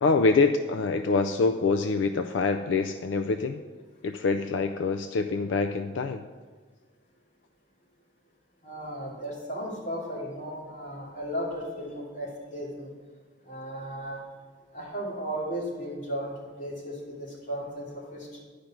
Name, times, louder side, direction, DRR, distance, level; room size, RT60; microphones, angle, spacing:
voice 1, 0.0-3.6 4.0-6.2, left 4 dB, 85° left, 7 dB, 0.4 m, -25 dB
voice 2, 8.6-12.9 13.4-14.2 14.7-16.3 16.6-18.4, equal, 40° left, -5 dB, 2.9 m, -35 dB
10.5 x 5.1 x 5.9 m, 1.5 s
head